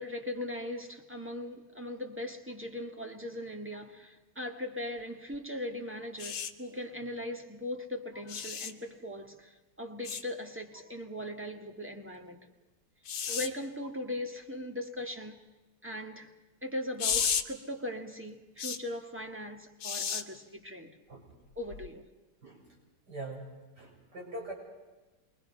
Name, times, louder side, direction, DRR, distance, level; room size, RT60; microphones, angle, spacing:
voice 1, 0.0-12.4 13.3-15.4 15.8-16.3 16.6-20.9 21.6-22.0, left 1 dB, 5° right, 1.6 m, -39 dB
sound 1, 6.2-6.5 8.3-8.7 10.0-10.2 13.1-13.5 17.0-17.4 18.6-18.8 19.8-20.2 21.7-21.9, left 7 dB, 70° left, 2.0 m, -32 dB
voice 2, 23.1-23.5 23.8-24.5, right 1 dB, 50° right, 7.4 m, -42 dB
28.0 x 23.0 x 5.7 m
omnidirectional pair, 2.2 m